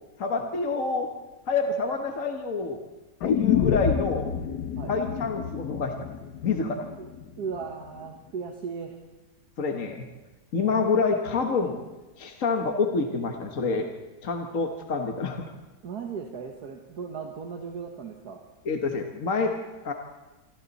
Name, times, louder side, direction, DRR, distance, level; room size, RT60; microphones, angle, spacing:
voice 1, 0.2-1.1 1.5-2.8 3.2-4.3 4.9-6.1 6.4-6.9 9.6-10.1 10.5-11.8 12.2-13.9 14.2-15.4 18.6-19.5 19.8-19.9, left 4 dB, 55° left, 4 dB, 1.7 m, -27 dB
sound 1, 3.2-7.3 7.6-7.7, left 8 dB, 80° left, 1.5 m, -28 dB
voice 2, 7.4-9.0 10.6-10.8 15.8-18.4, right 6 dB, 70° right, 3 dB, 1.9 m, -37 dB
26.5 x 26.5 x 4.2 m, 1.2 s
omnidirectional pair, 1.7 m